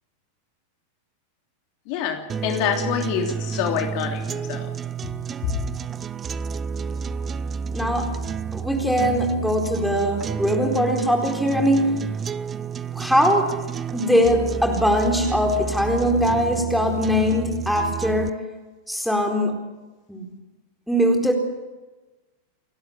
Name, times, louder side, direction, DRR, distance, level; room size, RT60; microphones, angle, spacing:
voice 1, 1.9-4.7 5.4-5.5, left 8 dB, 45° left, 2 dB, 3.2 m, -26 dB
sound 1, 2.3-18.3, right 6 dB, 20° right, 0.8 m, -30 dB
voice 2, 7.7-8.2 8.5-12.1 12.9-13.6 13.9-18.5 18.9-19.6 20.1-20.3 20.9-21.3, equal, ahead, 3 dB, 4.2 m, -21 dB
29.5 x 12.5 x 8.9 m, 1.2 s
figure-of-eight pair, 90°, 0 cm